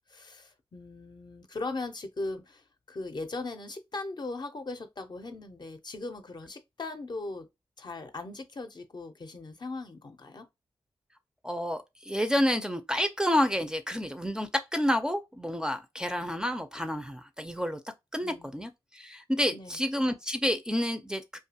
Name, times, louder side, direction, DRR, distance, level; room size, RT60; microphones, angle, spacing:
voice 1, 0.1-7.5 7.8-10.5 18.2-18.6 19.5-19.8, left 3 dB, 45° left, 0.6 m, -39 dB
voice 2, 11.4-17.8 18.1-21.4, equal, 5° right, 0.4 m, -29 dB
2.4 x 2.3 x 2.7 m
cardioid pair, 45°, 10 cm